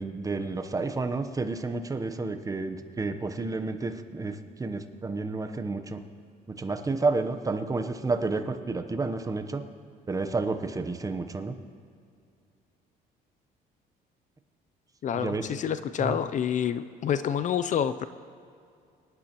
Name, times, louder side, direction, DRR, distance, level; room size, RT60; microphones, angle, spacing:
voice 1, 0.0-6.0 6.5-9.6 10.1-11.5 15.1-15.5 16.0-16.2, right 3 dB, 20° right, 7 dB, 0.9 m, -30 dB
voice 2, 15.0-18.1, left 8 dB, 50° left, 12 dB, 0.5 m, -28 dB
25.5 x 11.5 x 3.0 m, 2.4 s
cardioid pair, 110°, 17 cm